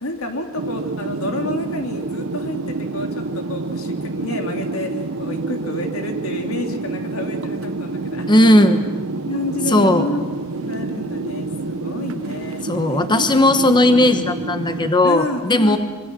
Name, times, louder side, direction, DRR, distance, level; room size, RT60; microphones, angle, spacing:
voice 1, 0.0-8.8 9.2-10.2 10.6-13.0 15.0-15.8, left 1 dB, 80° left, 3 dB, 3.2 m, -29 dB
sound 1, 0.6-14.9, right 3 dB, 70° right, 0.9 m, -28 dB
voice 2, 8.3-8.8 9.7-10.0 12.6-15.8, left 1 dB, 20° left, 8 dB, 1.1 m, -16 dB
26.0 x 24.0 x 7.5 m, 1.4 s
head